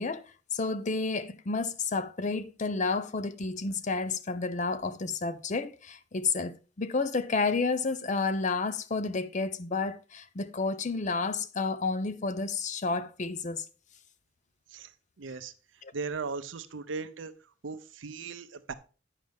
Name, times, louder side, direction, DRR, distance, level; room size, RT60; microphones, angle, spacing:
voice 1, 0.0-13.7 15.8-15.9, left 4 dB, 40° left, 0.6 m, -31 dB
voice 2, 15.2-15.5 15.9-17.3 17.6-18.7, right 4 dB, 85° right, 0.7 m, -37 dB
9.1 x 6.4 x 3.5 m
head